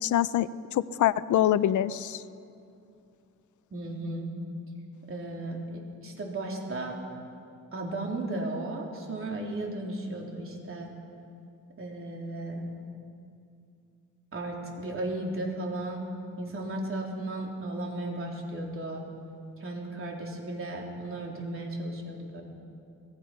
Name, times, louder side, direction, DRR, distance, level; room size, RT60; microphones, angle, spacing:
voice 1, 0.0-2.2, left 11 dB, 70° left, 15 dB, 0.6 m, -25 dB
voice 2, 3.7-4.3 5.1-7.0 7.7-10.9 11.8-12.7 14.3-16.1 16.4-19.1 19.6-22.4, right 2 dB, 45° right, 0 dB, 3.7 m, -35 dB
25.0 x 17.5 x 5.8 m, 2.5 s
cardioid pair, 125°, 31 cm